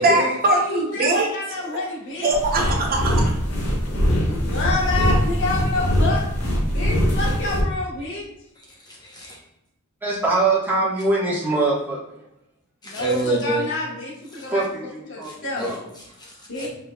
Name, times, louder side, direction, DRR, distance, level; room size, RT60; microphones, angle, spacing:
voice 1, 0.0-1.3 2.2-3.4, right 2 dB, 40° right, 0 dB, 0.7 m, -21 dB
voice 2, 0.5-2.3 4.3-6.2 6.7-8.2 12.8-14.1 14.4-14.6 15.1-15.7 16.5-16.7, left 2 dB, 60° left, -3 dB, 1.3 m, -28 dB
sound 1, 2.3-7.6, equal, 80° left, 1.4 m, -22 dB
voice 3, 8.6-9.4 12.8-13.7 14.3-14.5 15.2-16.7, right 2 dB, 20° left, -4 dB, 0.9 m, -29 dB
voice 4, 10.0-12.0 14.5-15.9, right 2 dB, 10° right, -8 dB, 1.4 m, -23 dB
5.2 x 3.8 x 2.3 m, 0.88 s
head